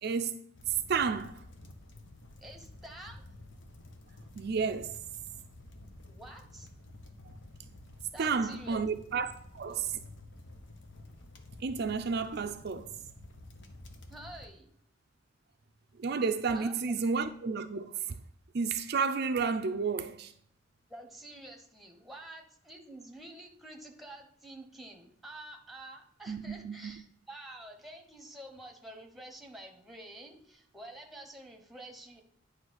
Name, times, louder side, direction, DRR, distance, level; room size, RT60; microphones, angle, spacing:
voice 1, 0.0-1.5 4.4-5.0 8.2-10.0 11.6-12.9 16.0-18.0 18.5-20.3 26.3-27.0, right 5 dB, 55° right, 0.5 m, -31 dB
sound 1, 0.5-14.5, left 2 dB, 65° left, 1.0 m, -51 dB
voice 2, 2.4-3.2 6.1-6.7 8.1-8.9 14.1-14.7 16.5-16.9 20.9-32.2, right 1 dB, ahead, 1.1 m, -48 dB
9.6 x 3.3 x 6.3 m
head